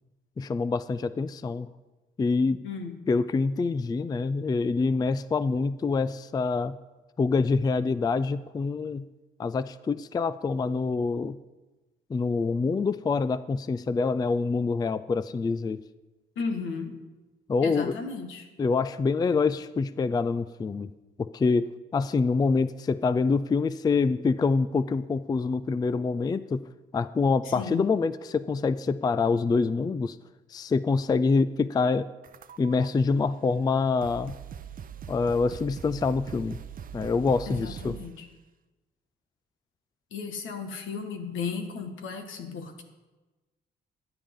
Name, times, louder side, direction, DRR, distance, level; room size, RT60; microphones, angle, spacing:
voice 1, 0.4-1.7 2.2-2.6 3.1-6.8 7.2-9.0 9.4-11.4 12.1-15.8 17.5-18.0 18.6-20.9 21.2-26.6 26.9-30.2 30.5-32.1 32.6-34.4 35.1-36.6 36.9-38.0, left 4 dB, 20° left, 15 dB, 0.3 m, -26 dB
voice 2, 2.6-3.0 16.3-17.0 17.6-18.5 27.4-27.9 37.5-38.3 40.1-42.8, left 5 dB, 80° left, 6 dB, 1.6 m, -35 dB
sound 1, 32.2-32.9 33.6-33.7 34.0-38.2, right 8 dB, 45° right, 0.6 m, -42 dB
15.0 x 8.9 x 3.7 m, 1.2 s
cardioid pair, 90°, 20 cm